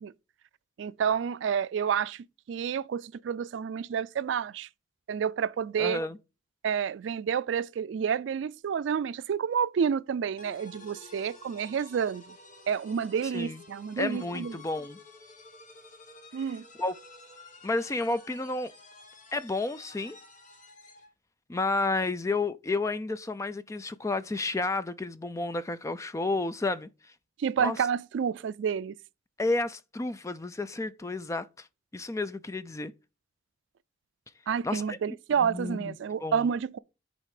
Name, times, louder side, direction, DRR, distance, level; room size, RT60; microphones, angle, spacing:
voice 1, 0.8-4.7 5.1-6.0 6.6-12.2 12.7-14.5 16.3-16.6 27.4-29.0 34.5-36.8, right 7 dB, 75° right, 0.3 m, -29 dB
voice 2, 5.8-6.2 13.3-13.6 14.0-15.0 16.8-16.9 17.6-18.7 19.3-20.2 21.5-26.9 27.6-27.8 29.4-31.7 31.9-32.9 34.6-35.0 35.4-35.9 36.2-36.5, left 2 dB, 15° left, 0.4 m, -31 dB
sound 1, 10.4-21.1, left 3 dB, 45° left, 1.3 m, -51 dB
9.8 x 4.1 x 4.8 m
head